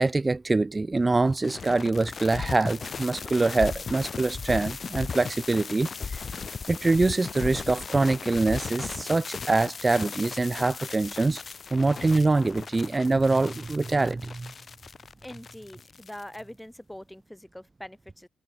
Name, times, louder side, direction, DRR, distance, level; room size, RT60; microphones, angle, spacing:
voice 1, 0.0-6.3 6.7-11.4 11.7-14.5, right 3 dB, 20° right, 0.4 m, -24 dB
sound 1, 1.1-16.4, left 5 dB, 40° left, 2.7 m, -37 dB
voice 2, 15.2-18.3, left 1 dB, 5° left, 6.9 m, -43 dB
cardioid pair, 90°, 0 cm